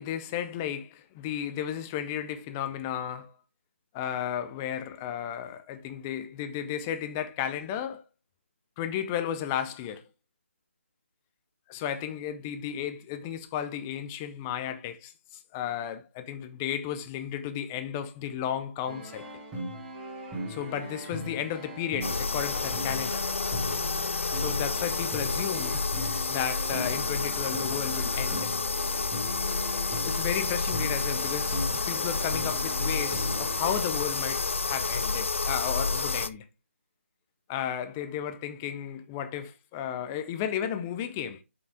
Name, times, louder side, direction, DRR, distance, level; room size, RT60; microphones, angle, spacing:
voice 1, 0.0-3.3 3.9-8.0 8.8-10.0 11.7-19.4 20.5-23.2 24.3-25.9 26.3-28.6 30.0-36.5 37.5-41.4, left 9 dB, 10° left, 0.4 m, -34 dB
sound 1, 18.9-33.8, equal, 10° right, 1.9 m, -39 dB
sound 2, 22.0-36.3, left 4 dB, 65° left, 0.7 m, -30 dB
7.1 x 5.6 x 3.4 m
figure-of-eight pair, 165°, 7 cm